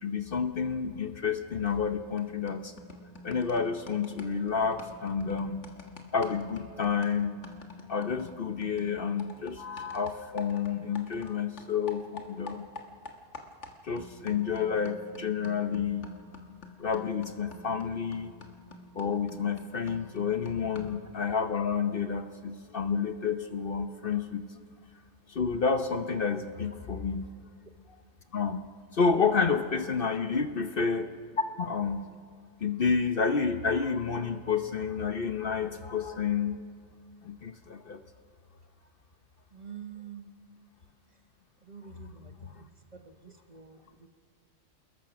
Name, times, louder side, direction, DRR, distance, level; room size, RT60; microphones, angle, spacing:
voice 1, 0.0-2.7 3.2-5.7 6.1-7.4 7.9-12.6 13.8-16.1 16.8-18.3 18.9-24.5 25.3-27.3 27.9-28.0 28.3-28.6 28.9-31.1 31.6-32.1 32.6-36.6 37.2-38.0 42.4-42.6, left 6 dB, 50° left, 8 dB, 1.0 m, -30 dB
sound 1, 1.7-1.9 2.2-11.3 11.6-21.1, left 3 dB, 65° left, 1.9 m, -48 dB
voice 2, 39.5-40.3 41.6-44.1, right 7 dB, 35° right, 7 dB, 1.1 m, -46 dB
28.0 x 21.0 x 6.1 m, 2.2 s
omnidirectional pair, 1.3 m